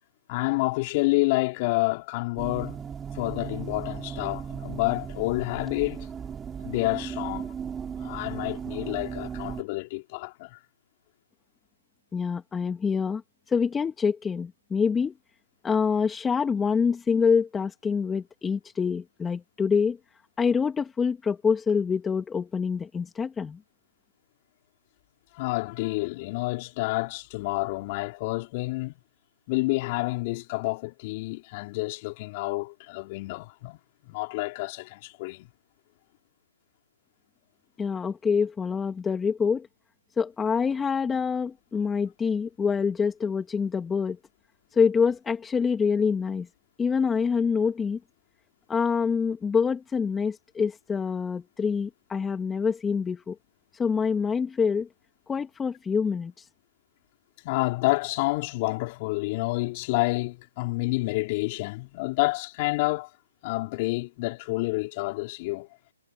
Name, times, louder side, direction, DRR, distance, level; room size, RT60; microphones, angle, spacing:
voice 1, 0.3-2.8 3.1-6.1 6.6-7.5 8.0-10.6 25.3-29.0 29.5-33.8 34.1-35.5 57.4-63.1 63.4-65.7, left 23 dB, 30° left, 4.2 m, -29 dB
sound 1, 2.4-9.6, right 7 dB, 10° right, 4.2 m, -36 dB
voice 2, 12.1-13.2 13.5-15.1 15.6-20.0 20.4-23.6 37.8-39.7 40.2-44.2 44.7-46.5 46.8-48.0 48.7-53.4 53.7-54.9 55.3-56.5, left 6 dB, 10° left, 2.7 m, -26 dB
hypercardioid pair, 145°, 0 cm